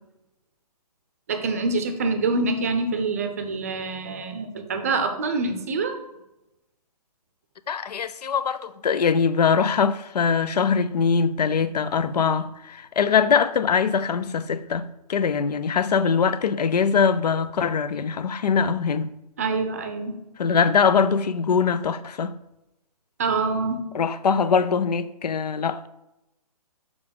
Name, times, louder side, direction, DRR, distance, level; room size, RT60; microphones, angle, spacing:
voice 1, 1.3-6.0 19.4-20.2 23.2-23.8, right 3 dB, 25° right, 0.6 m, -25 dB
voice 2, 7.7-19.1 20.4-22.4 23.9-25.9, left 6 dB, 90° left, 0.6 m, -22 dB
7.1 x 4.9 x 5.2 m
hypercardioid pair, 175°, 20 cm